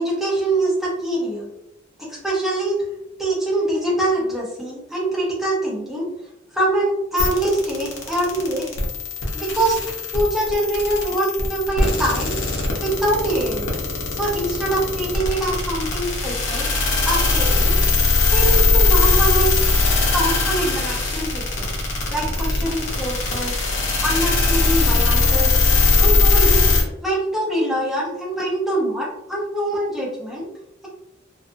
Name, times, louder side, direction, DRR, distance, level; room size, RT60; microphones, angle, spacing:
voice 1, 0.0-1.5 2.0-2.8 3.2-6.1 6.5-8.6 9.3-9.8 10.1-12.4 12.8-13.7 14.1-16.7 17.1-17.7 18.3-19.7 20.1-21.7 22.1-23.5 24.0-25.5 26.0-26.7 27.0-30.5, right 1 dB, ahead, -5 dB, 0.7 m, -24 dB
sound 1, 7.2-26.8, left 3 dB, 75° left, 0.7 m, -20 dB
2.4 x 2.4 x 2.5 m, 0.86 s
head